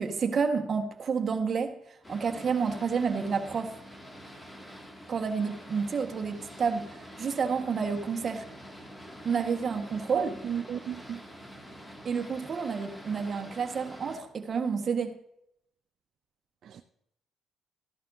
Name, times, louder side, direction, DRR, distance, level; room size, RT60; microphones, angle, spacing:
voice 1, 0.0-1.8 2.1-3.8 5.1-8.4 9.2-10.4 12.0-15.1, right 5 dB, 50° right, 4 dB, 1.4 m, -29 dB
Boat Water vehicle, 2.0-14.2, equal, 15° left, 2.2 m, -46 dB
voice 2, 10.1-11.2 16.6-16.8, right 8 dB, 65° right, 8 dB, 0.5 m, -34 dB
14.5 x 11.0 x 2.7 m, 0.78 s
cardioid pair, 90°, 0 cm